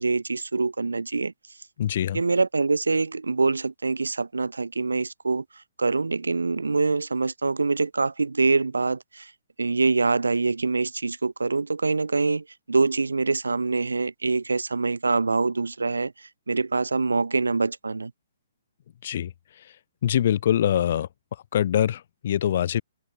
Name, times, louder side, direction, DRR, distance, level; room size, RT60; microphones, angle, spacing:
voice 1, 0.0-1.3 2.1-5.4 5.8-9.3 9.6-18.1, right 3 dB, 75° right, 0.8 m, -25 dB
voice 2, 1.8-2.2 19.0-19.3 20.0-21.1 21.5-22.8, left 10 dB, 50° left, 0.4 m, -23 dB
figure-of-eight pair, 125°, 0 cm